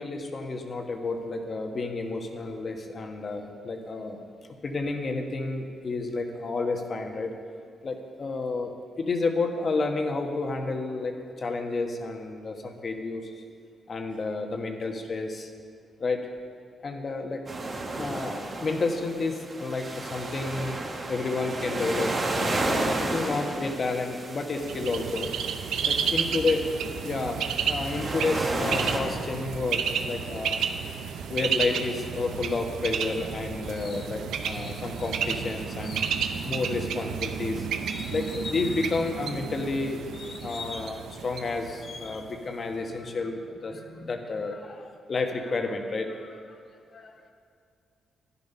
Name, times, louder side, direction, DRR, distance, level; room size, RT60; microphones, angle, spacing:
voice 1, 0.0-4.2 4.6-7.3 7.8-8.7 9.0-11.1 11.4-13.3 13.9-15.5 16.0-16.2 16.8-17.4 18.0-20.8 21.1-25.3 25.9-26.7 27.0-30.6 31.3-46.6 46.9-47.1, left 3 dB, 45° left, 4 dB, 1.3 m, -31 dB
sound 1, 17.5-29.0, right 2 dB, 40° right, 1.8 m, -33 dB
Bird, 24.6-42.4, right 7 dB, 90° right, 0.7 m, -32 dB
11.0 x 10.5 x 5.6 m, 2.3 s
cardioid pair, 90°, 0 cm